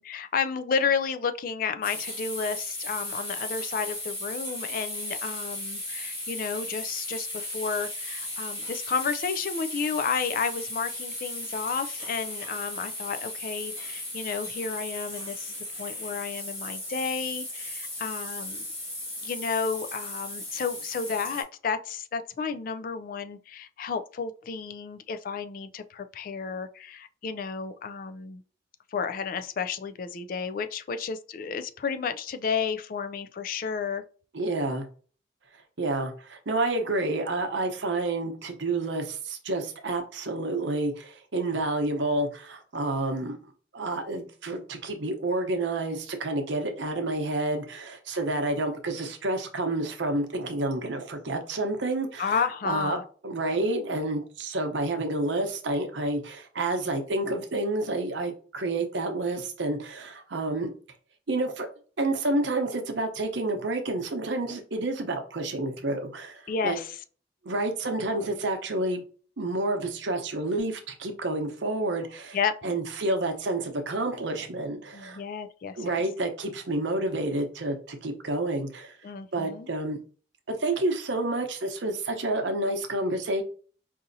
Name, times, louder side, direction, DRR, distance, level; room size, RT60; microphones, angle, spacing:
voice 1, 0.0-18.7 19.2-28.4 28.9-34.0 52.2-53.0 66.5-67.0 72.3-72.5 74.9-75.9 79.0-79.7, left 5 dB, 50° left, 0.3 m, -32 dB
sound 1, 1.8-21.4, left 1 dB, 30° left, 1.7 m, -36 dB
voice 2, 34.3-34.9 35.8-43.4 43.7-52.4 52.6-53.0 53.2-60.7 61.3-61.7 62.0-66.8 67.4-69.0 69.4-72.4 72.6-75.2 75.8-79.0 79.3-80.0 80.5-83.4, right 2 dB, 85° right, 0.8 m, -29 dB
4.9 x 2.7 x 2.6 m
head